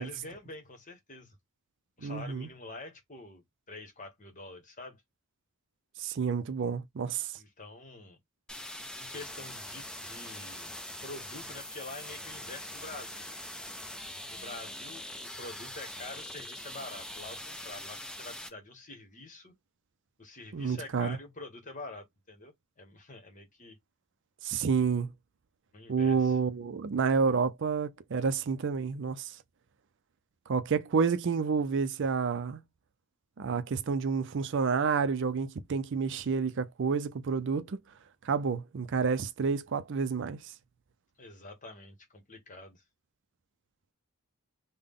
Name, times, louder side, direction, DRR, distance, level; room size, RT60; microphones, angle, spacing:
voice 1, 0.0-1.4 2.0-5.0 7.4-8.2 8.9-10.7 11.0-13.3 14.3-19.5 20.2-23.8 25.7-26.4 41.2-42.8, left 2 dB, 35° left, 1.2 m, -46 dB
voice 2, 2.0-2.5 6.0-7.3 20.5-21.2 24.4-25.1 25.9-29.3 30.5-32.6 33.4-37.8 38.2-40.4, right 5 dB, 60° right, 0.4 m, -29 dB
sound 1, 8.5-18.5, left 1 dB, 5° left, 0.5 m, -43 dB
3.6 x 2.2 x 3.6 m
head